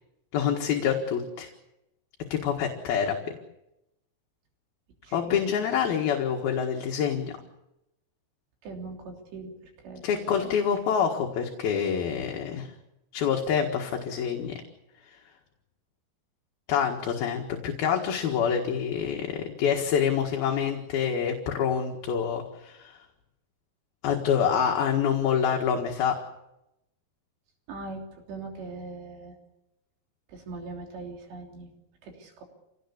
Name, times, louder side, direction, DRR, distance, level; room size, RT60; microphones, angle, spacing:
voice 1, 0.3-1.5 2.3-3.2 5.1-7.3 10.0-12.7 13.1-14.6 16.7-23.0 24.0-26.2, left 7 dB, 65° left, 1 dB, 3.4 m, -26 dB
voice 2, 5.0-5.4 8.6-10.6 27.7-29.4 30.3-31.7 32.0-32.4, right 3 dB, 80° right, 1 dB, 5.5 m, -41 dB
27.5 x 18.0 x 8.4 m, 0.90 s
omnidirectional pair, 4.9 m